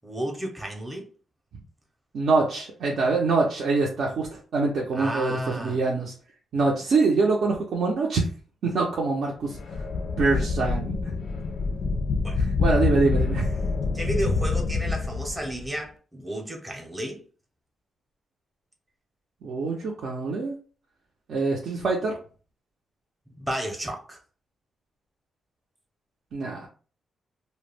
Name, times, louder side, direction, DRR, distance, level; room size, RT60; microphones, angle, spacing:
voice 1, 0.0-1.1 4.9-5.8 12.2-12.4 13.9-17.2 23.4-24.2, right 1 dB, 10° right, 0.6 m, -32 dB
voice 2, 2.1-6.1 6.5-8.2 8.6-9.6 10.2-11.0 12.4-13.5 19.4-20.5 21.3-22.1 26.3-26.7, right 3 dB, 70° right, 0.6 m, -24 dB
sound 1, 9.5-15.7, left 4 dB, 55° left, 0.3 m, -26 dB
2.2 x 2.0 x 3.3 m
cardioid pair, 115°, 0 cm